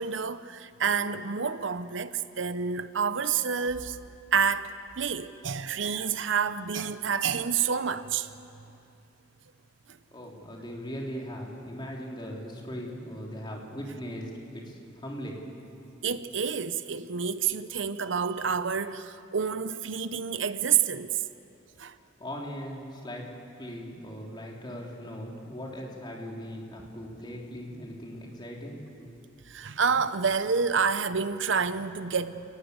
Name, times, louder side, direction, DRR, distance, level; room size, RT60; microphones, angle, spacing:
voice 1, 0.0-4.0 4.3-8.3 16.0-21.2 21.8-21.9 29.5-32.4, right 6 dB, 70° right, 0.8 m, -28 dB
voice 2, 10.1-15.4 22.2-23.3 23.6-29.1, equal, 25° left, 3.5 m, -39 dB
29.5 x 19.5 x 8.1 m
head